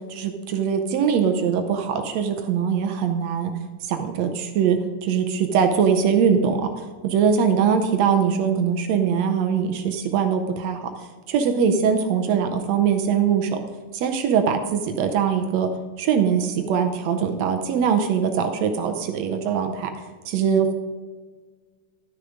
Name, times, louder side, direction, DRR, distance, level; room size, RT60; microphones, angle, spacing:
voice 1, 0.1-3.5 3.8-10.9 11.3-13.6 13.9-15.7 16.0-19.9 20.3-20.7, right 7 dB, 70° right, 6 dB, 1.8 m, -22 dB
12.5 x 6.5 x 5.0 m, 1.5 s
omnidirectional pair, 3.6 m